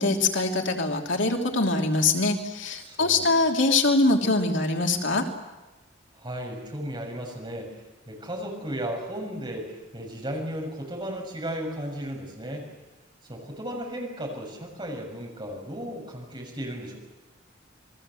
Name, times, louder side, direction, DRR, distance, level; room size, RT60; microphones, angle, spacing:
voice 1, 0.0-5.2, left 3 dB, 75° left, 2 dB, 3.1 m, -23 dB
voice 2, 2.8-3.4 6.2-7.8 8.1-12.7 13.3-17.0, equal, 25° right, 0 dB, 7.0 m, -35 dB
29.0 x 22.0 x 7.8 m, 1.1 s
head